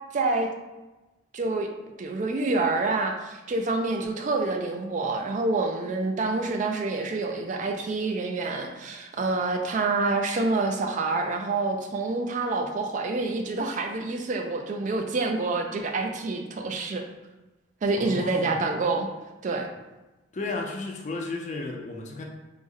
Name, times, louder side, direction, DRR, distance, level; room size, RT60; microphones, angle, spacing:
voice 1, 0.1-0.5 1.3-1.7 2.0-17.0 17.8-19.1 19.4-19.7, right 3 dB, 40° right, 4 dB, 0.3 m, -27 dB
voice 2, 18.0-18.6 20.3-22.2, left 3 dB, 40° left, 2 dB, 0.4 m, -33 dB
3.2 x 2.0 x 3.6 m, 1.1 s
head